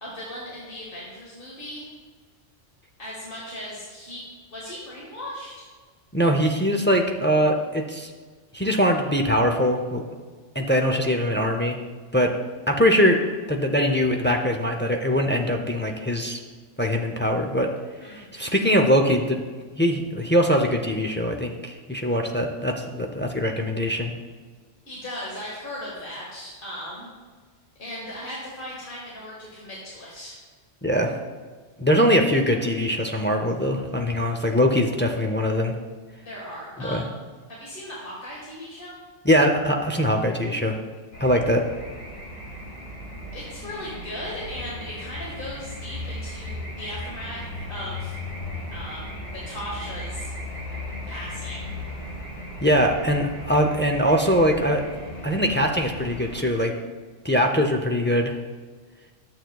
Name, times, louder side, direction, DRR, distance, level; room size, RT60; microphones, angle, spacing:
voice 1, 0.0-1.9 3.0-4.2 4.5-5.6 18.0-18.5 24.9-27.1 27.8-30.4 36.2-37.1 37.5-39.0 43.3-48.2 48.7-50.3 51.1-51.7, left 1 dB, 50° left, -5 dB, 1.8 m, -37 dB
voice 2, 6.1-8.1 8.5-10.0 10.5-11.8 12.1-12.3 12.7-13.2 13.5-16.4 16.8-17.7 18.0-19.4 19.7-24.1 30.8-31.1 31.8-35.7 36.8-37.0 39.2-40.8 41.2-41.6 52.6-54.8 55.2-56.7 57.2-58.3, equal, 20° left, 2 dB, 0.3 m, -22 dB
sound 1, 41.1-56.4, left 1 dB, 80° left, 2.2 m, -36 dB
11.5 x 7.8 x 2.3 m, 1.5 s
omnidirectional pair, 1.2 m